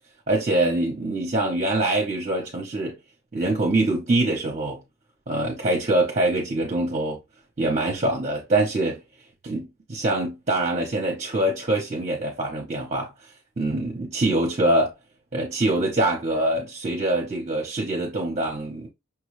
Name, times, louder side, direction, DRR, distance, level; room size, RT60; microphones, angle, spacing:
voice 1, 0.3-2.9 3.3-4.8 5.3-7.2 7.6-9.0 9.4-13.1 13.6-14.9 15.3-18.9, right 2 dB, 35° right, 0.8 m, -24 dB
5.8 x 2.3 x 3.1 m
head